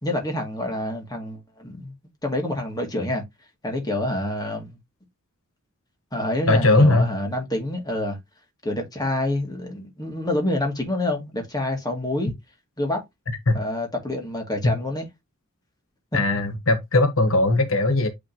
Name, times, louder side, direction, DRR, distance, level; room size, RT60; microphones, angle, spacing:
voice 1, 0.0-1.9 2.2-3.2 3.6-4.8 6.1-8.2 8.6-12.3 12.8-13.0 13.5-15.1 16.1-16.2, left 1 dB, 20° left, 2.4 m, -27 dB
voice 2, 6.5-7.1 13.5-13.6 14.6-14.7 16.1-18.1, left 2 dB, 70° left, 1.3 m, -19 dB
8.8 x 4.2 x 2.9 m
head